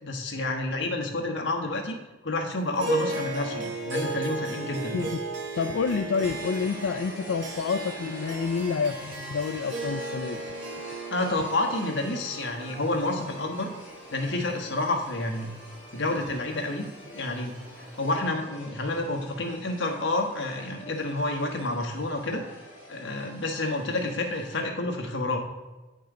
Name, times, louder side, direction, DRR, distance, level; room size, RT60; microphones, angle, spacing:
voice 1, 0.0-2.0 2.2-5.1 11.1-13.7 14.1-15.5 15.9-16.9 17.1-22.4 22.9-25.4, left 2 dB, 70° left, 2 dB, 1.3 m, -29 dB
Harp, 2.8-15.3, right 2 dB, 65° right, 0.9 m, -35 dB
voice 2, 5.6-10.4, left 5 dB, 90° left, 6 dB, 0.4 m, -28 dB
sound 1, 6.2-24.6, equal, 10° right, 2.5 m, -46 dB
9.1 x 5.4 x 3.8 m, 1.1 s
head